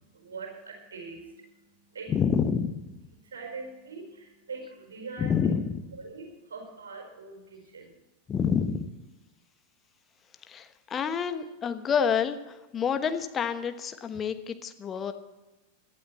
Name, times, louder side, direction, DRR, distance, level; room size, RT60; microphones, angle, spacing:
voice 1, 0.0-2.1 3.2-5.3 6.0-7.9, right 4 dB, 65° right, 3 dB, 4.6 m, -42 dB
voice 2, 2.1-2.8 5.2-5.8 8.3-8.9 10.5-15.1, left 7 dB, 25° left, 9 dB, 1.1 m, -28 dB
17.5 x 12.0 x 4.3 m, 1.1 s
figure-of-eight pair, 90°, 0 cm